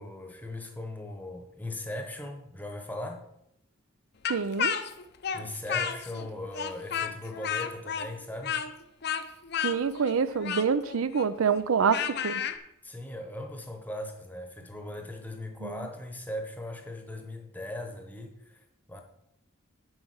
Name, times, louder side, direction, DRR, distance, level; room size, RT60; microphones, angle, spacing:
voice 1, 0.0-3.2 5.3-8.6 12.8-19.0, left 1 dB, 10° left, 4 dB, 0.9 m, -39 dB
Speech, 4.2-6.3 6.5-12.6, left 7 dB, 50° left, 0.6 m, -32 dB
voice 2, 4.3-4.8 9.6-12.4 15.6-15.8, right 6 dB, 90° right, 15 dB, 0.5 m, -26 dB
8.1 x 4.8 x 6.4 m, 0.81 s
head